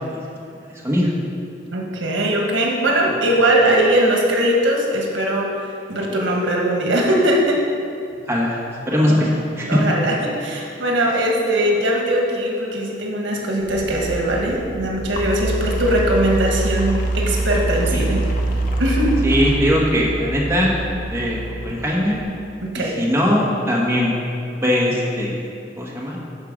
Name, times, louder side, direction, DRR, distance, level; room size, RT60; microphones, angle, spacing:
voice 1, 1.7-5.6 5.9-7.6 9.1-9.3 9.7-18.3 18.8-19.2 22.6-22.9, right 1 dB, 90° right, -1 dB, 1.4 m, -20 dB
voice 2, 8.3-8.6 8.9-9.3 9.6-9.8 17.9-18.1 19.2-20.7 21.1-22.2 22.7-24.1 24.6-25.4 25.8-26.2, equal, 15° right, -4 dB, 1.3 m, -20 dB
sound 1, 13.6-22.2, right 2 dB, 45° left, 0.8 m, -25 dB
12.5 x 4.6 x 5.1 m, 2.6 s
head